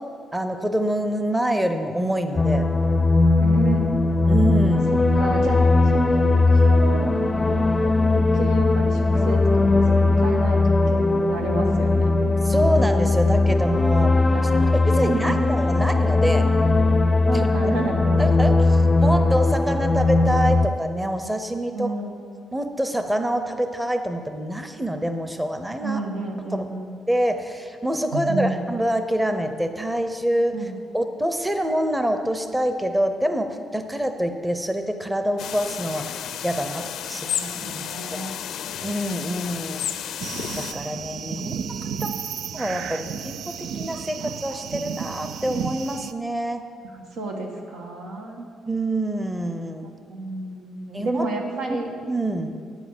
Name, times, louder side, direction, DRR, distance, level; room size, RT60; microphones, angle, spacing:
voice 1, 0.3-2.7 4.3-4.9 12.4-14.1 14.9-16.5 17.3-17.5 18.2-21.9 22.5-26.0 26.5-26.6 27.1-30.5 30.9-36.0 36.4-37.3 37.7-37.8 38.8-39.9 40.6-41.6 42.0-42.1 42.5-43.4 43.7-46.6 48.7-49.9 50.9-51.3 52.1-52.5, right 1 dB, 10° right, 7 dB, 0.7 m, -26 dB
sound 1, 2.4-20.7, left 2 dB, 20° left, 0.5 m, -19 dB
voice 2, 3.4-3.9 4.9-5.6 5.9-7.5 7.8-12.1 14.3-15.5 17.2-18.2 21.7-22.2 25.8-26.9 28.1-28.6 30.5-30.7 37.2-38.3 46.8-48.4 49.8-51.9, right 2 dB, 90° right, 1 dB, 1.5 m, -31 dB
sound 2, 35.4-40.7, left 9 dB, 80° left, 0.5 m, -32 dB
sound 3, 40.2-46.1, right 7 dB, 70° right, 0.4 m, -32 dB
9.1 x 7.3 x 7.3 m, 2.1 s
cardioid pair, 90°, 0 cm